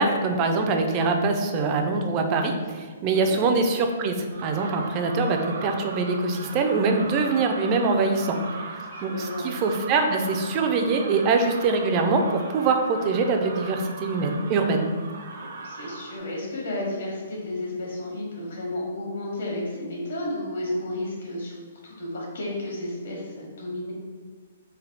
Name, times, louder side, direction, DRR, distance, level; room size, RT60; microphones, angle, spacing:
voice 1, 0.0-4.2 4.4-8.4 9.0-14.9, right 3 dB, 25° right, 4 dB, 0.3 m, -23 dB
voice 2, 3.0-3.4 8.9-9.5 15.6-21.5 21.8-23.9, left 1 dB, 70° left, -3 dB, 1.4 m, -32 dB
sound 1, 4.3-16.2, right 3 dB, 65° right, 0.6 m, -39 dB
3.3 x 2.7 x 3.8 m, 1.5 s
hypercardioid pair, 170°, 0 cm